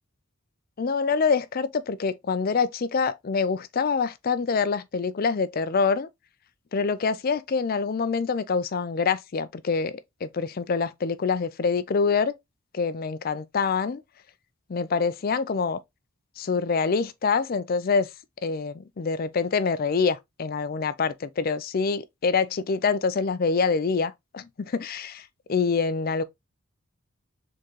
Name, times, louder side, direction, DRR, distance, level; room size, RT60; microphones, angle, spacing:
voice 1, 0.8-6.1 6.7-9.9 10.2-12.3 12.7-14.0 14.7-15.8 16.4-18.1 18.4-26.2, left 5 dB, 40° left, 0.4 m, -25 dB
4.5 x 3.6 x 3.1 m
head